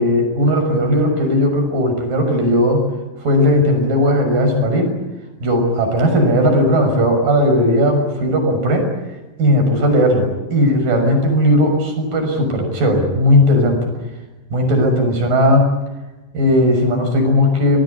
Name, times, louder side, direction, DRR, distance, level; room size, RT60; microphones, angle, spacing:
voice 1, 0.0-2.8 3.2-4.9 5.4-8.9 9.4-13.9 14.5-15.7 16.3-17.8, left 1 dB, 50° right, 5 dB, 7.8 m, -16 dB
26.5 x 20.0 x 9.8 m, 1.1 s
omnidirectional pair, 4.9 m